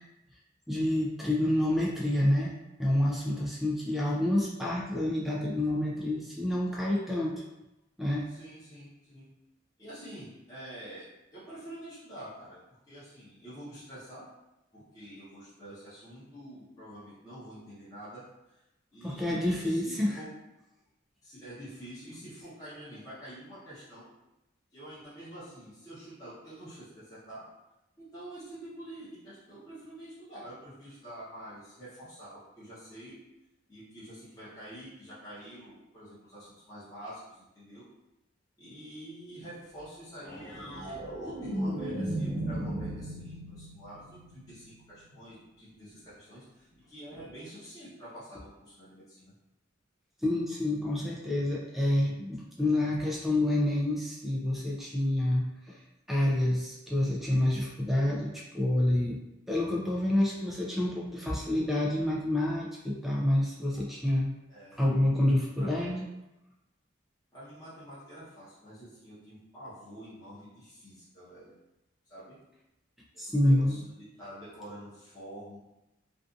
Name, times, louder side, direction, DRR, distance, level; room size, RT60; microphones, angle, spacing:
voice 1, 0.7-2.5 2.8-7.3 8.0-8.3 19.0-20.2 50.2-55.8 56.1-59.2 59.5-64.3 64.8-66.1 73.2-73.8, left 1 dB, ahead, -3 dB, 0.3 m, -28 dB
voice 2, 8.3-9.3 9.8-11.1 11.3-12.6 12.9-14.3 14.7-18.2 18.9-20.3 21.2-24.0 24.7-27.4 28.0-33.2 33.7-37.9 38.6-49.3 64.5-64.8 65.6-66.0 67.3-71.5 72.1-72.4 73.3-75.6, right 1 dB, 20° left, -12 dB, 0.8 m, -47 dB
sound 1, 40.2-44.7 47.1-47.3, right 1 dB, 85° right, 0.9 m, -35 dB
2.6 x 2.4 x 2.4 m, 0.94 s
head